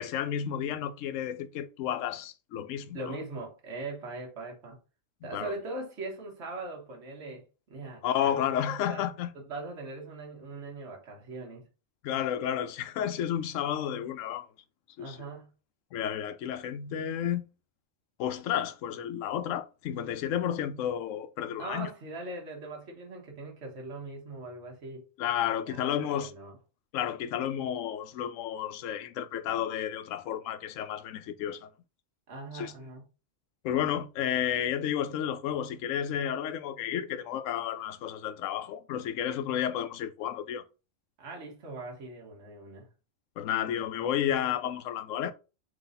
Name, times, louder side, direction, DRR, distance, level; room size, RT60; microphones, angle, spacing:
voice 1, 0.0-3.0 5.3-5.5 8.0-9.3 12.0-14.5 15.0-15.2 15.9-17.4 18.2-21.9 25.2-26.3 26.9-31.7 32.5-32.7 33.6-40.6 43.4-45.3, left 10 dB, 75° left, 0.9 m, -31 dB
voice 2, 2.9-4.8 5.2-8.4 8.9-9.1 9.3-11.7 15.0-15.5 21.6-25.1 25.6-26.6 32.3-33.0 41.2-42.9, right 2 dB, 55° right, 1.5 m, -41 dB
3.9 x 3.2 x 3.9 m
omnidirectional pair, 1.4 m